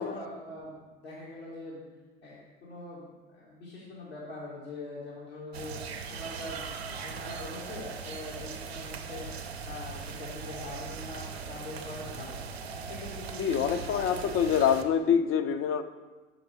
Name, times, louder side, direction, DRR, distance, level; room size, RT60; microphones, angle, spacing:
voice 1, 0.0-1.8 2.2-5.8 6.1-9.3 9.6-12.4 12.7-14.6, left 2 dB, 85° left, -9 dB, 1.7 m, -43 dB
sound 1, 5.5-14.8, right 5 dB, 90° right, 0.5 m, -40 dB
voice 2, 13.4-15.8, left 8 dB, 45° left, 10 dB, 0.5 m, -26 dB
5.9 x 5.0 x 4.7 m, 1.3 s
figure-of-eight pair, 55°, 30 cm